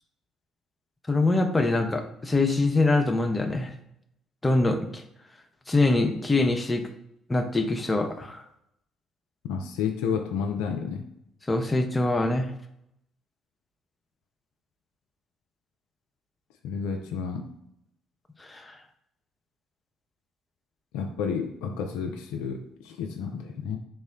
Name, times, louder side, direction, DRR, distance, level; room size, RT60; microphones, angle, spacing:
voice 1, 1.1-3.7 4.4-5.0 5.7-6.9 7.3-8.4 11.5-12.5 18.4-18.8, left 2 dB, 20° left, 6 dB, 0.5 m, -24 dB
voice 2, 9.4-11.0 16.6-17.5 20.9-23.8, left 6 dB, 70° left, 4 dB, 0.3 m, -31 dB
3.7 x 2.1 x 3.5 m, 0.77 s
figure-of-eight pair, 50°, 0 cm